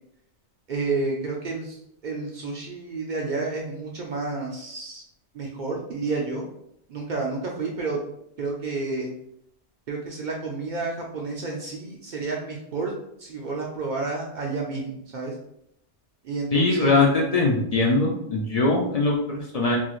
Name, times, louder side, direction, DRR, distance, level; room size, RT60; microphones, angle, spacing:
voice 1, 0.7-1.8 2.0-5.0 5.3-6.5 6.9-8.0 8.4-9.1 9.9-12.9 13.2-15.3 16.2-17.0, right 3 dB, 55° right, -1 dB, 0.5 m, -30 dB
voice 2, 16.5-19.8, left 3 dB, 60° left, -1 dB, 0.4 m, -21 dB
3.0 x 2.6 x 2.4 m, 0.73 s
omnidirectional pair, 1.1 m